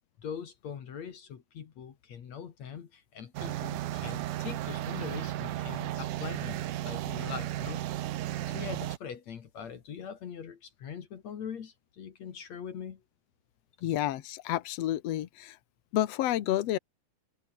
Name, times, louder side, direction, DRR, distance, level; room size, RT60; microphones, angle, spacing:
voice 1, 0.2-7.8 8.5-13.0 13.8-13.9, left 7 dB, 50° left, 2.7 m, -42 dB
sound 1, 3.4-9.0, right 14 dB, 65° right, 2.3 m, -34 dB
voice 2, 13.8-15.6 15.9-16.8, left 13 dB, 75° left, 1.5 m, -30 dB
omnidirectional pair, 4.5 m